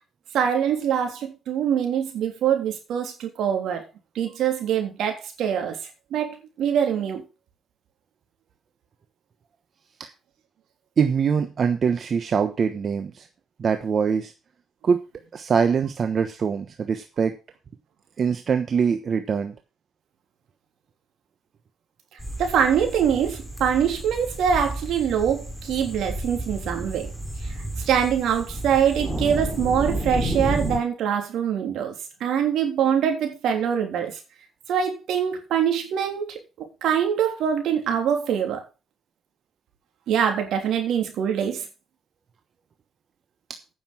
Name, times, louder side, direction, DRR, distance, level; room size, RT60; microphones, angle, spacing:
voice 1, 0.3-3.8 4.1-5.8 6.1-7.2 22.4-27.1 27.4-31.9 32.2-34.2 34.7-38.6 40.1-41.6, right 8 dB, 80° right, 4 dB, 3.3 m, -24 dB
voice 2, 11.0-13.3 13.6-14.3 14.8-15.0 15.3-17.3 18.2-19.5, right 6 dB, 50° right, 8 dB, 1.1 m, -23 dB
sound 1, 22.2-30.8, right 1 dB, ahead, 3.1 m, -31 dB
9.4 x 6.9 x 6.1 m, 0.29 s
cardioid pair, 90°, 0 cm